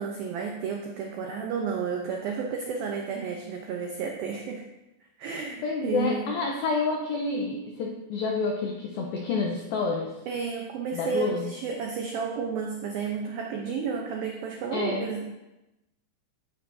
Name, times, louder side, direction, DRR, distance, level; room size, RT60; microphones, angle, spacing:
voice 1, 0.0-4.6 5.2-6.3 10.3-15.2, right 6 dB, 90° right, 1 dB, 2.0 m, -32 dB
voice 2, 5.6-10.1 10.9-11.5 14.7-15.1, left 4 dB, 85° left, 0 dB, 2.1 m, -28 dB
14.5 x 9.5 x 2.7 m, 0.96 s
omnidirectional pair, 5.5 m